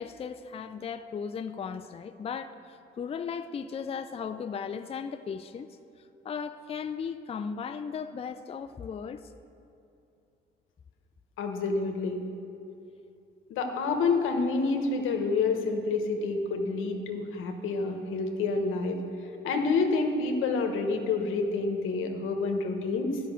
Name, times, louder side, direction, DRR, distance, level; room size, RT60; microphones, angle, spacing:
voice 1, 0.0-5.7 6.2-9.3, left 6 dB, 30° left, 0.4 m, -36 dB
voice 2, 11.4-12.2 13.5-19.0 19.4-23.2, left 4 dB, 85° left, 1.1 m, -28 dB
11.0 x 5.7 x 7.5 m
cardioid pair, 90°, 20 cm